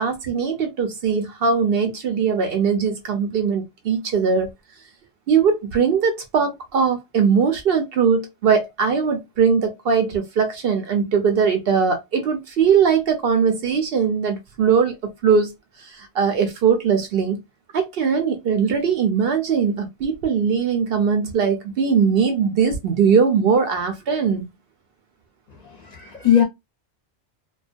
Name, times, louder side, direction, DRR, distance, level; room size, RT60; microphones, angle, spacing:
voice 1, 0.0-4.5 5.3-15.5 15.8-17.4 17.7-24.5, right 6 dB, 65° right, 0.7 m, -20 dB
voice 2, 25.6-26.4, left 10 dB, 45° left, 0.7 m, -19 dB
2.3 x 2.1 x 2.4 m
omnidirectional pair, 1.2 m